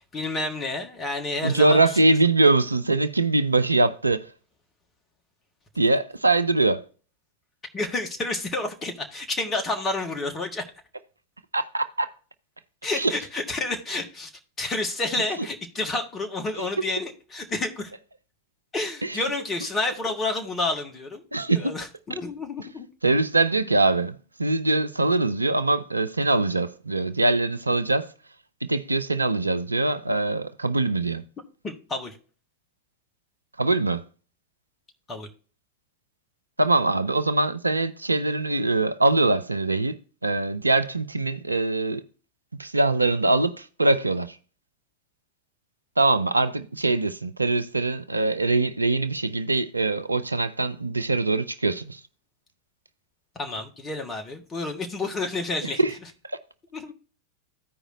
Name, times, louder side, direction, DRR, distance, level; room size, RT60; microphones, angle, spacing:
voice 1, 0.0-1.8 7.7-10.6 12.8-14.3 14.6-17.9 18.7-21.2 21.5-22.9 31.6-32.2 35.1-35.3 53.4-55.8 56.7-56.9, left 2 dB, 20° left, 1.5 m, -29 dB
voice 2, 1.4-4.3 5.8-6.8 11.5-12.1 12.9-13.1 16.6-16.9 19.0-19.2 21.3-21.7 23.0-28.1 28.6-31.2 33.6-34.0 36.6-42.0 42.6-44.4 46.0-52.0 55.8-55.9 56.3-56.4, right 2 dB, 80° right, 0.5 m, -23 dB
14.5 x 4.9 x 2.6 m
figure-of-eight pair, 90°, 0 cm